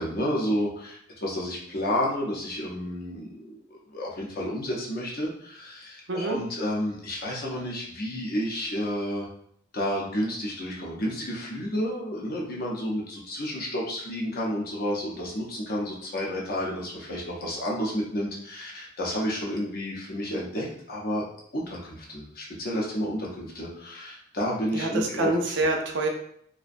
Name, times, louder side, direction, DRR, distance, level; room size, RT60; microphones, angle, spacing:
voice 1, 0.0-9.3 9.7-21.2 21.5-25.3, equal, 45° left, -3 dB, 0.6 m, -31 dB
voice 2, 24.7-26.1, right 2 dB, 60° right, 2 dB, 0.4 m, -26 dB
2.5 x 2.1 x 2.5 m, 0.68 s
head